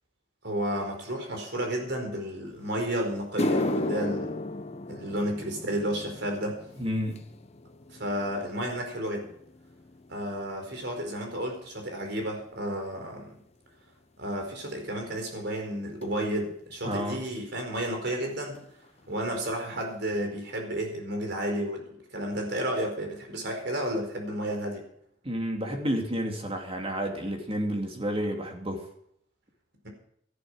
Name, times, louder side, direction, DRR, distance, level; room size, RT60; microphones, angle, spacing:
voice 1, 0.4-4.4 4.9-6.6 7.9-9.3 10.1-13.4 14.2-18.6 19.1-24.8, right 1 dB, 60° right, 3 dB, 4.6 m, -32 dB
sound 1, 2.7-2.8 3.2-11.7 12.0-12.4 13.2-13.3 16.0-16.1 17.8-17.9 18.0-18.3 18.5-19.1 19.5-19.6 20.1-20.2, left 2 dB, 35° left, 1.0 m, -35 dB
voice 2, 6.8-7.3 16.8-17.2 25.2-28.8, equal, 30° right, 2 dB, 2.7 m, -30 dB
13.5 x 11.5 x 6.3 m, 0.69 s
head